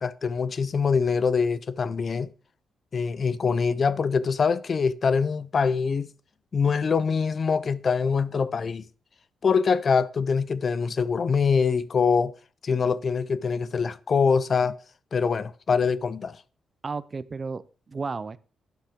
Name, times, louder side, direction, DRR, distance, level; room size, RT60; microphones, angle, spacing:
voice 1, 0.0-2.3 2.9-6.1 6.5-8.8 9.4-12.3 12.6-14.8 15.1-16.4, left 5 dB, 40° left, 0.5 m, -24 dB
voice 2, 16.8-18.4, right 4 dB, 30° right, 0.5 m, -33 dB
11.5 x 9.3 x 3.6 m
cardioid pair, 140°, 0 cm